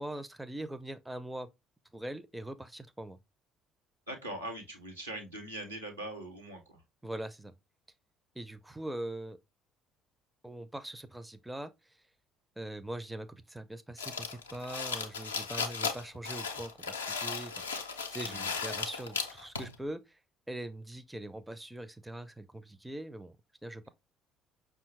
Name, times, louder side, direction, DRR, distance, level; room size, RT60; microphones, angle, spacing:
voice 1, 0.0-1.5 1.9-3.2 7.0-7.5 8.3-9.4 10.4-12.0 12.6-20.2 20.5-23.4 23.6-23.9, right 1 dB, 10° right, 0.4 m, -42 dB
voice 2, 4.1-6.8 18.2-18.5, right 1 dB, 90° right, 0.9 m, -42 dB
sound 1, 14.0-19.8, left 5 dB, 80° left, 0.4 m, -36 dB
5.4 x 2.4 x 3.1 m
figure-of-eight pair, 50°, 0 cm